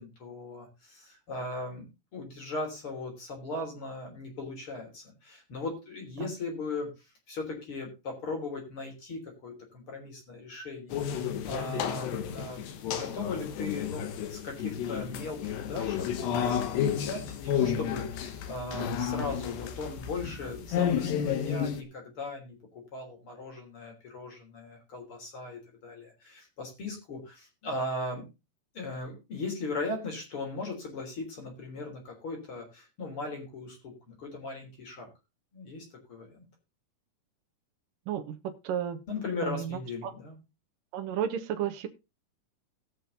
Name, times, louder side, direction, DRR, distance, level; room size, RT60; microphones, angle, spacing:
voice 1, 0.0-6.9 7.3-14.0 14.3-28.2 28.7-35.1 35.5-36.5 39.1-40.4, left 3 dB, 35° left, 2 dB, 4.1 m, -38 dB
sound 1, 10.9-21.8, left 8 dB, 85° left, 3.5 m, -31 dB
voice 2, 38.1-39.0 39.4-39.8 40.9-41.9, right 9 dB, 65° right, 5 dB, 2.6 m, -32 dB
18.0 x 6.3 x 3.9 m, 0.26 s
omnidirectional pair, 4.7 m